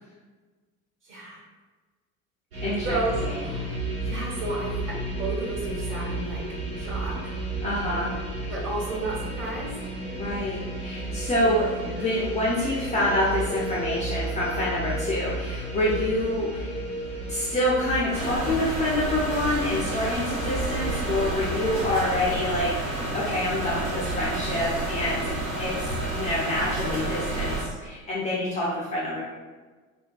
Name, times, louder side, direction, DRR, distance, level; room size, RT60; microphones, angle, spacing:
voice 1, 1.0-1.4 2.8-6.5 6.8-7.3 8.5-9.8 11.4-11.5 11.8-12.1 28.3-28.8, right 2 dB, 30° right, -3 dB, 1.1 m, -33 dB
sound 1, 2.5-22.4, right 2 dB, 75° right, 0.8 m, -33 dB
voice 2, 2.6-3.0 3.2-3.4 7.6-8.1 10.2-16.8 17.3-25.3 25.6-29.2, left 1 dB, 15° left, -7 dB, 0.5 m, -27 dB
sound 2, 18.1-27.6, right 2 dB, 50° right, 1.2 m, -30 dB
3.3 x 2.2 x 2.3 m, 1.3 s
figure-of-eight pair, 65°, 42 cm